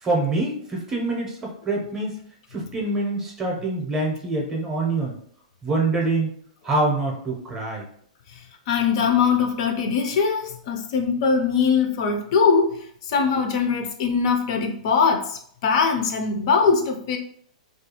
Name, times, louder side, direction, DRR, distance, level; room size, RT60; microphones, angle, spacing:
voice 1, 0.0-2.2 2.5-5.2 5.6-6.3 6.6-7.9, right 2 dB, 15° right, -2 dB, 0.6 m, -25 dB
voice 2, 8.7-17.2, left 5 dB, 50° left, 3 dB, 0.4 m, -21 dB
2.3 x 2.3 x 2.8 m, 0.64 s
hypercardioid pair, 150°, 4 cm